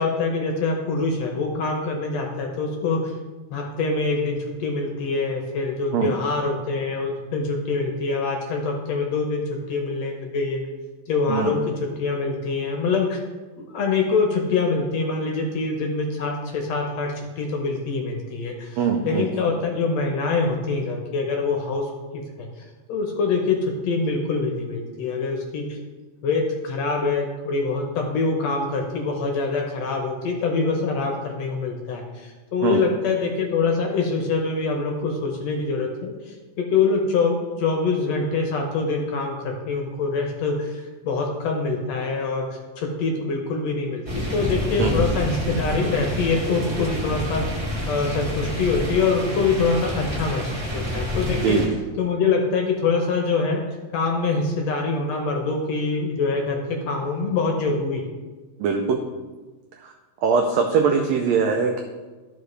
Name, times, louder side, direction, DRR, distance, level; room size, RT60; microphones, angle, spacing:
voice 1, 0.0-3.1 3.5-10.6 11.1-13.2 13.6-25.8 26.2-47.5 47.9-53.6 53.9-58.0 60.9-61.0, left 4 dB, 70° left, 2 dB, 1.8 m, -25 dB
voice 2, 18.8-19.3 32.6-32.8 44.8-44.9 51.4-51.8 58.6-59.0 59.8-59.9 60.2-61.8, right 6 dB, 85° right, 4 dB, 1.5 m, -21 dB
sound 1, 44.0-51.7, left 1 dB, 15° right, 1.8 m, -28 dB
13.0 x 4.9 x 3.2 m, 1.3 s
omnidirectional pair, 3.6 m